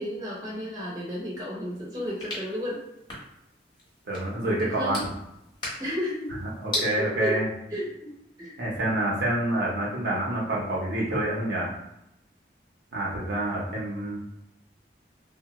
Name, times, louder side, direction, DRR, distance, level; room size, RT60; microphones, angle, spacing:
voice 1, 0.0-2.8 4.6-5.0 5.8-6.4 6.7-7.4 7.7-8.1 8.4-8.5, equal, 20° right, -6 dB, 0.9 m, -32 dB
sound 1, 1.7-6.9, left 1 dB, 25° left, 1.0 m, -38 dB
voice 2, 4.1-5.0 6.4-7.5 8.6-11.7 12.9-14.2, right 1 dB, 70° right, -4 dB, 0.8 m, -27 dB
3.3 x 2.1 x 2.9 m, 0.85 s
head